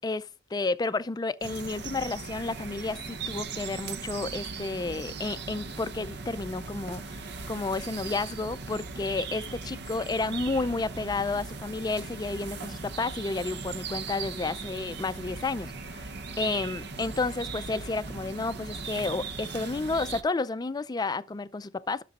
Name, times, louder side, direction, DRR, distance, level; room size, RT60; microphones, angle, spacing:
voice 1, 0.0-22.0, left 3 dB, 20° left, 0.4 m, -31 dB
sound 1, 1.4-20.2, right 4 dB, 65° right, 0.8 m, -38 dB
13.0 x 6.7 x 2.5 m
head